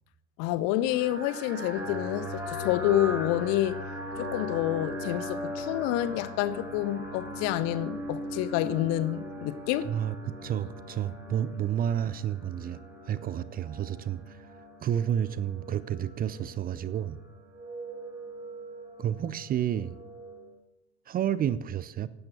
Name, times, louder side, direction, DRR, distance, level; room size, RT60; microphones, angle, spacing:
voice 1, 0.4-3.8 4.2-9.9, left 13 dB, 50° left, 1.0 m, -28 dB
sound 1, 0.9-20.6, equal, 10° right, 4.9 m, -39 dB
voice 2, 9.9-12.8 13.0-17.2 19.0-20.0 21.1-22.1, right 10 dB, 25° right, 0.6 m, -30 dB
15.0 x 12.0 x 6.0 m
figure-of-eight pair, 70°, 33 cm